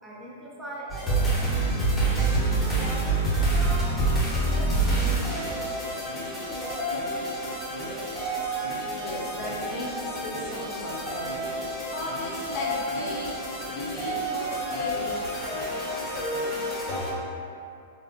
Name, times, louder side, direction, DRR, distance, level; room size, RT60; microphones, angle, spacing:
voice 1, 0.0-1.3 2.2-3.9 4.3-4.8 5.6-8.1, right 1 dB, 10° right, -5 dB, 0.5 m, -40 dB
sound 1, 0.9-17.1, right 2 dB, 10° left, 0.8 m, -28 dB
voice 2, 9.0-11.3 11.9-13.4 13.7-15.4, left 2 dB, 45° left, -3 dB, 0.5 m, -36 dB
3.6 x 2.1 x 2.5 m, 2.5 s
hypercardioid pair, 135°, 0 cm